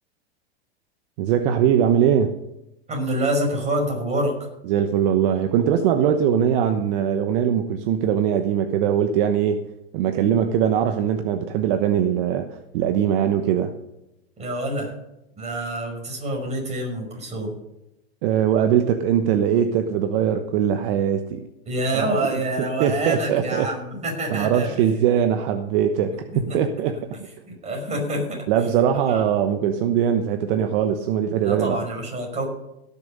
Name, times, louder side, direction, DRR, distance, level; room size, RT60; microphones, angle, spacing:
voice 1, 1.2-2.4 4.7-9.6 9.9-13.7 18.2-21.4 22.8-23.7 24.3-27.0 28.5-31.8, right 9 dB, 55° right, 7 dB, 1.1 m, -21 dB
voice 2, 2.9-4.5 14.4-14.9 15.4-17.5 21.7-24.7 26.3-26.6 26.8-28.4 28.9-29.2 31.4-32.5, right 1 dB, 20° right, 1 dB, 5.5 m, -27 dB
17.0 x 7.0 x 5.4 m, 0.89 s
hypercardioid pair, 115°, 32 cm